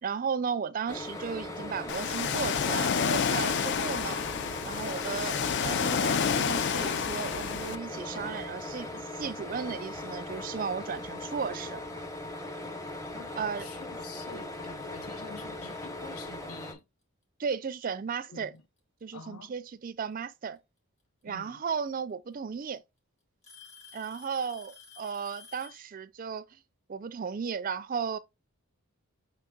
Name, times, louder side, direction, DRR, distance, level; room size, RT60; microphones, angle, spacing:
voice 1, 0.0-4.2 4.6-5.4 5.6-11.8 13.4-13.7 17.4-18.5 19.0-20.6 21.2-22.8 23.9-26.6 26.9-28.2, right 6 dB, 40° right, 0.4 m, -35 dB
sound 1, 0.9-16.7, left 2 dB, 15° left, 0.8 m, -39 dB
Ocean, 1.9-7.8, left 6 dB, 50° left, 0.4 m, -29 dB
voice 2, 13.1-16.8 18.3-18.6 19.1-19.5 21.3-21.6, left 4 dB, 75° left, 0.8 m, -47 dB
Alarm / Tick-tock, 17.0-17.1 18.3-18.8 20.6-20.7 21.9-22.0 22.3-22.8 23.4-25.9, left 6 dB, 30° left, 1.4 m, -51 dB
5.6 x 3.8 x 2.3 m
head